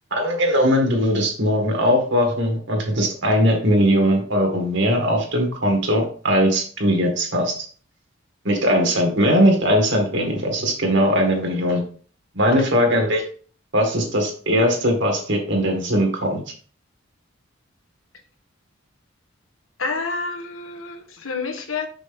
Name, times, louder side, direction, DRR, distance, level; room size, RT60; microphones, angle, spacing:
voice 1, 0.1-7.5 8.4-11.8 12.3-13.2 13.7-16.4, equal, 60° right, 2 dB, 2.1 m, -20 dB
voice 2, 19.8-21.9, left 4 dB, 90° left, 5 dB, 1.3 m, -29 dB
6.0 x 5.7 x 3.6 m, 0.43 s
head